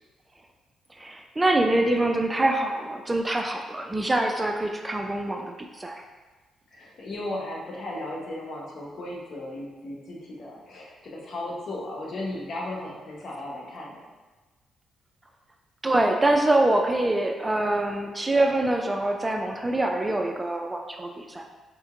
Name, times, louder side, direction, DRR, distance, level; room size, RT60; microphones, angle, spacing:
voice 1, 1.0-5.5 5.8-6.0 15.8-21.4, right 1 dB, 20° right, 3 dB, 0.3 m, -24 dB
voice 2, 6.7-14.0, left 1 dB, 60° left, -3 dB, 0.8 m, -36 dB
4.1 x 2.9 x 2.4 m, 1.3 s
cardioid pair, 70°, 0 cm